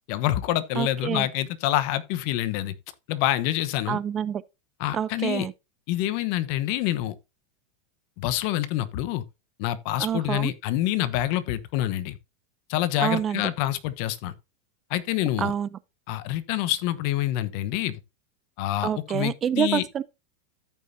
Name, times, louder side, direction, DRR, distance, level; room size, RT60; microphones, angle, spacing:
voice 1, 0.1-2.7 3.1-4.0 4.8-5.5 5.9-7.1 8.2-9.2 9.6-12.2 12.7-14.3 14.9-15.5 16.1-18.0 18.6-19.9, left 14 dB, 55° left, 0.9 m, -26 dB
voice 2, 0.8-1.3 3.9-4.4 4.9-5.5 10.0-10.5 13.0-13.4 15.4-15.7 18.8-20.0, right 9 dB, 30° right, 0.5 m, -27 dB
14.0 x 5.3 x 2.7 m
supercardioid pair, 125°, 0 cm